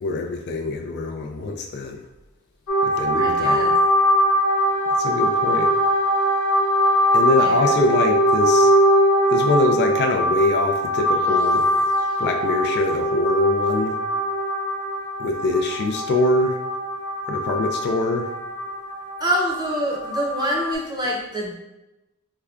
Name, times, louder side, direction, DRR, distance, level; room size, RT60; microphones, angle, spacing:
voice 1, 0.0-2.1 2.8-3.8 4.9-5.8 7.1-8.7 9.3-11.7 12.2-14.0 15.2-16.6 17.3-18.3, left 3 dB, 50° left, 3 dB, 0.3 m, -23 dB
sound 1, 2.7-20.7, equal, 90° left, 0.6 m, -21 dB
voice 2, 3.2-3.7 19.2-21.5, equal, 20° right, -2 dB, 0.7 m, -25 dB
4.7 x 2.2 x 2.3 m, 0.97 s
head